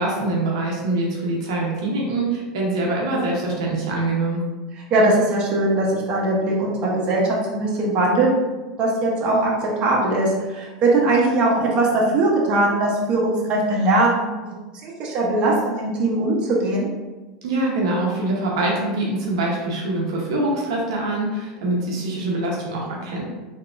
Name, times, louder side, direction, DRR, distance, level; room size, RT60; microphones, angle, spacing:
voice 1, 0.0-4.4 17.4-23.2, right 2 dB, 80° right, -2 dB, 0.8 m, -24 dB
voice 2, 4.9-8.3 8.6-14.5 14.8-16.9, right 2 dB, 40° right, -3 dB, 0.9 m, -20 dB
3.5 x 2.9 x 2.5 m, 1.2 s
supercardioid pair, 120°, 3 cm